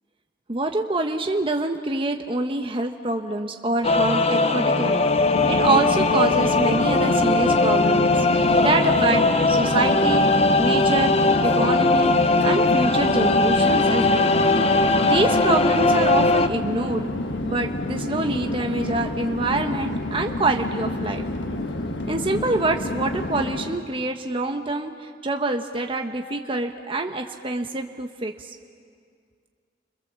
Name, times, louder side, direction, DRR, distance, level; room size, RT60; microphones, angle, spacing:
voice 1, 0.5-5.0 5.5-10.3 10.6-11.2 11.4-14.4 15.0-17.1 17.4-21.2 22.1-28.5, right 2 dB, 30° right, 4 dB, 1.1 m, -26 dB
sound 1, 3.8-16.5, left 2 dB, 35° left, 0.9 m, -19 dB
Chatter / Fixed-wing aircraft airplane, 5.0-23.9, left 1 dB, 80° left, 1.5 m, -29 dB
29.5 x 25.5 x 7.5 m, 2.1 s
head